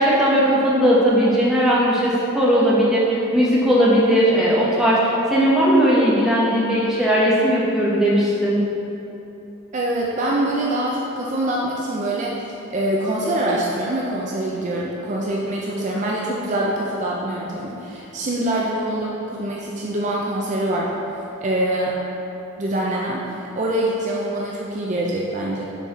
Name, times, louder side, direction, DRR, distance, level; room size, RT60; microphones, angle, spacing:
voice 1, 0.0-8.6, equal, ahead, -7 dB, 0.9 m, -18 dB
voice 2, 9.7-12.3 12.7-20.9 21.4-22.0 22.6-25.6, right 1 dB, 35° right, -3 dB, 0.4 m, -24 dB
6.0 x 4.1 x 4.1 m, 2.9 s
head